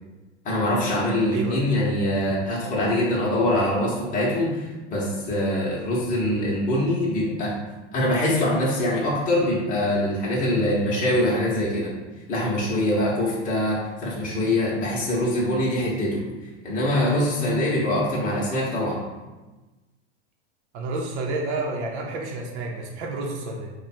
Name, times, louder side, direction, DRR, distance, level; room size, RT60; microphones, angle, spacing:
voice 1, 0.4-7.6 7.9-11.9 12.3-16.2 16.6-19.0, left 1 dB, 25° left, -5 dB, 0.9 m, -23 dB
voice 2, 1.3-1.6 20.7-23.7, right 2 dB, 65° right, 0 dB, 0.8 m, -30 dB
3.2 x 2.3 x 4.2 m, 1.1 s
hypercardioid pair, 120°, 35 cm